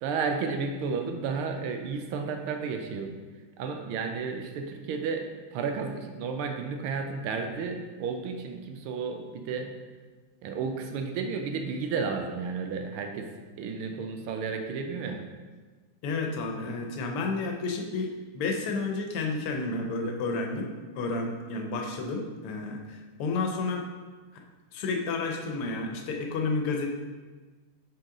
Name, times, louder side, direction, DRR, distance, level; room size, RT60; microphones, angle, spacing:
voice 1, 0.0-3.1 3.6-9.7 10.4-13.3 13.6-15.2, right 5 dB, 80° right, 5 dB, 1.5 m, -32 dB
voice 2, 16.0-23.8 24.7-26.9, left 3 dB, 80° left, 3 dB, 1.7 m, -31 dB
5.8 x 5.3 x 3.7 m, 1.4 s
omnidirectional pair, 2.4 m